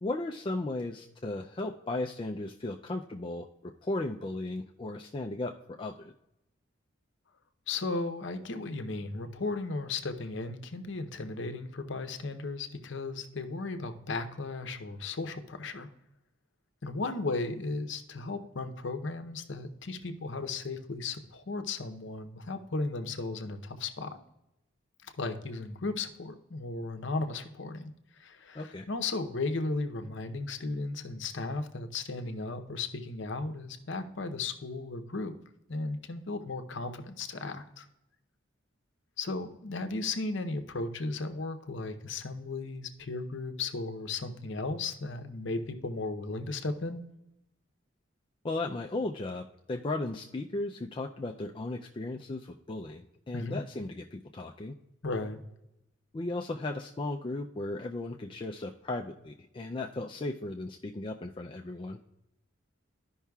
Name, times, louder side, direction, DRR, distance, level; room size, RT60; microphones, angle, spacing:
voice 1, 0.0-6.1 28.5-28.9 48.4-54.8 56.1-62.0, left 2 dB, 25° left, 2 dB, 0.3 m, -36 dB
voice 2, 7.7-15.9 16.8-24.1 25.2-28.6 28.9-35.3 35.7-37.9 39.2-47.0 53.3-53.6 55.0-55.4, left 3 dB, 60° left, 8 dB, 0.7 m, -35 dB
13.5 x 5.5 x 2.3 m, 0.88 s
head